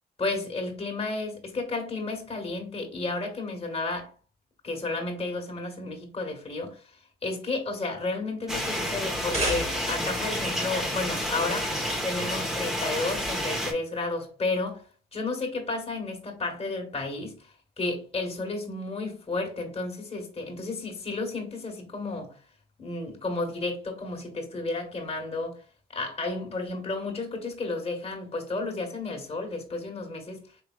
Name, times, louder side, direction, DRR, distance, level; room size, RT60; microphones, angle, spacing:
voice 1, 0.2-4.1 4.6-6.8 7.2-14.8 15.1-17.5 17.8-22.4 22.8-25.6 25.9-30.4, left 3 dB, 35° left, 1.7 m, -32 dB
sound 1, 8.5-13.7, equal, ahead, 1.2 m, -30 dB
sound 2, 9.0-10.2, equal, 40° right, 2.2 m, -32 dB
4.9 x 3.4 x 2.4 m
cardioid pair, 70°, 18 cm